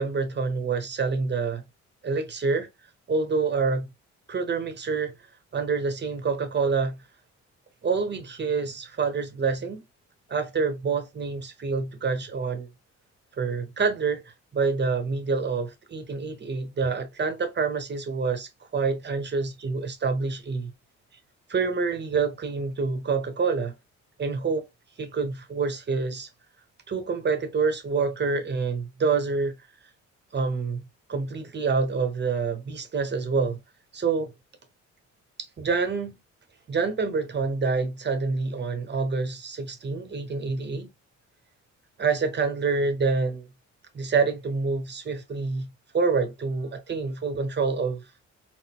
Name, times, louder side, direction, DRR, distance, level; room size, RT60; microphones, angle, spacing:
voice 1, 0.0-1.6 2.0-2.7 3.1-3.9 4.3-5.1 5.5-7.0 7.8-9.8 10.3-12.7 13.4-14.2 14.5-20.7 21.5-23.8 24.2-24.7 25.0-26.3 26.9-29.7 30.3-33.6 33.9-34.3 35.6-36.2 36.7-40.9 42.0-43.5 43.9-48.1, right 4 dB, 35° right, 0.9 m, -27 dB
4.0 x 2.1 x 2.4 m
cardioid pair, 90°, 30 cm